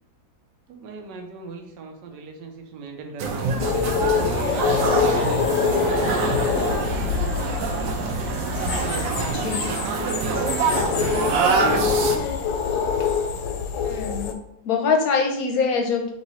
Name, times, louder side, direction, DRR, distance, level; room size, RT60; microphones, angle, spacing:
voice 1, 0.7-7.2 8.4-9.5 10.1-12.3 13.7-13.9, right 4 dB, 70° right, 3 dB, 1.3 m, -37 dB
sound 1, 3.2-12.2, right 4 dB, 90° right, 1.4 m, -25 dB
sound 2, 3.6-14.3, left 6 dB, 85° left, 1.3 m, -25 dB
voice 2, 13.8-14.4 14.6-16.1, left 5 dB, 65° left, 2 dB, 1.0 m, -23 dB
3.7 x 3.1 x 4.1 m, 0.73 s
omnidirectional pair, 2.0 m